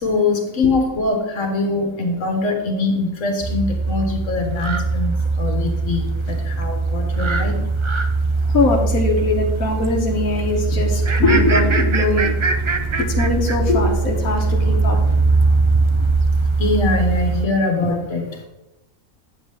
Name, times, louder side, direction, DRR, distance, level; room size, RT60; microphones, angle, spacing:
voice 1, 0.0-7.6 16.6-18.5, left 3 dB, 65° left, 3 dB, 1.7 m, -22 dB
sound 1, 3.4-17.4, right 3 dB, 50° right, 0.3 m, -20 dB
voice 2, 8.5-12.4 13.0-15.0, left 2 dB, 85° left, 0 dB, 1.4 m, -21 dB
9.1 x 7.3 x 3.5 m, 0.93 s
omnidirectional pair, 1.4 m